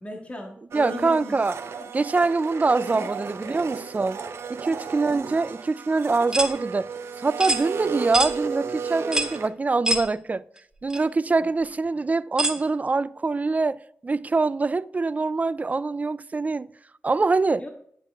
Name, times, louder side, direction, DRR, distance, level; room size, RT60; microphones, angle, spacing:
voice 1, 0.0-1.3 1.7-1.9 2.6-3.1 3.4-3.6 4.6-4.8 12.6-12.7 17.6-17.7, left 1 dB, 30° left, 1.7 m, -38 dB
voice 2, 0.7-1.6 1.9-4.2 4.5-6.9 7.2-10.4 10.8-13.8 14.0-16.7 17.0-17.6, right 3 dB, 35° right, 0.4 m, -24 dB
Domestic sounds home sounds, 0.7-9.5, right 6 dB, 75° right, 0.8 m, -34 dB
sound 1, 6.3-6.5 7.4-7.6 8.1-8.3 9.1-9.4 9.8-10.1 10.9-11.0 12.4-12.6, right 1 dB, 15° right, 1.4 m, -24 dB
10.5 x 6.7 x 3.5 m
cardioid pair, 50°, 4 cm